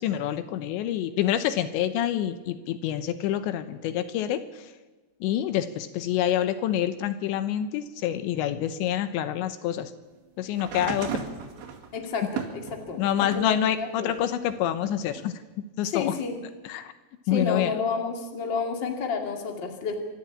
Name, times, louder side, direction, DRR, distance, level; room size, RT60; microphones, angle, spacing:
voice 1, 0.0-4.4 5.2-9.9 10.4-11.2 13.0-15.3 15.8-16.1 16.6-16.9 17.3-17.8, left 11 dB, 80° left, 11 dB, 3.1 m, -27 dB
sound 1, 10.5-13.6 14.1-15.2 16.2-16.3, right 8 dB, 70° right, 4.4 m, -36 dB
voice 2, 11.9-14.1 15.8-16.3 17.3-20.0, left 5 dB, 35° left, 3 dB, 2.2 m, -31 dB
26.0 x 12.5 x 8.6 m, 1.2 s
omnidirectional pair, 5.2 m